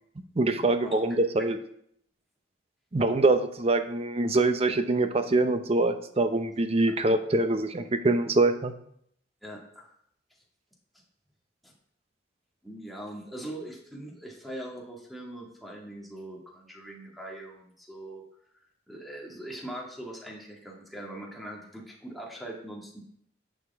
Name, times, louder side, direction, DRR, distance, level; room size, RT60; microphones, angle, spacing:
voice 1, 0.4-1.6 2.9-8.7, right 2 dB, 35° right, 9 dB, 0.7 m, -24 dB
voice 2, 9.4-9.9 11.6-11.7 12.6-18.2 18.5-23.0, right 1 dB, ahead, -2 dB, 1.8 m, -41 dB
11.0 x 6.5 x 3.5 m, 0.69 s
head